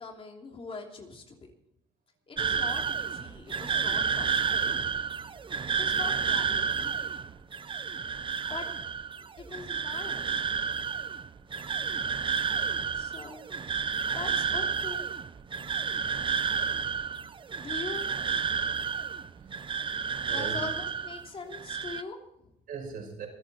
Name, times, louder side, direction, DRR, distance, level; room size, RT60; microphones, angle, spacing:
voice 1, 0.0-1.4 2.3-4.9 5.6-7.1 8.4-8.7 9.4-10.6 12.9-13.4 14.1-15.0 17.6-18.0 20.3-22.6, left 4 dB, 35° left, 2 dB, 3.0 m, -42 dB
sound 1, 2.4-21.3 21.5-22.0, right 6 dB, 30° right, 0.7 m, -31 dB
voice 2, 15.5-16.0 19.3-19.8 20.2-20.6 22.7-23.3, right 5 dB, 60° right, 1 dB, 6.0 m, -41 dB
26.5 x 9.2 x 4.3 m, 0.75 s
cardioid pair, 110°, 17 cm